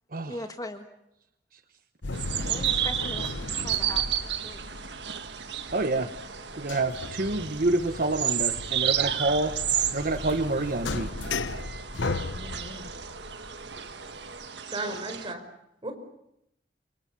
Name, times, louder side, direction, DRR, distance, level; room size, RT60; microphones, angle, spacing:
voice 1, 0.2-0.9 2.5-4.6, left 1 dB, 20° left, 6 dB, 1.7 m, -40 dB
sound 1, 2.0-14.5, left 3 dB, 90° left, 1.0 m, -37 dB
sound 2, 2.1-15.3, right 10 dB, 70° right, 1.6 m, -32 dB
voice 2, 5.7-6.1 6.6-9.5 9.9-11.1, right 2 dB, 50° right, 8 dB, 1.1 m, -27 dB
voice 3, 12.3-12.9 14.6-15.4 15.8-15.9, right 2 dB, 30° right, 6 dB, 4.9 m, -36 dB
29.0 x 24.5 x 7.2 m, 0.80 s
head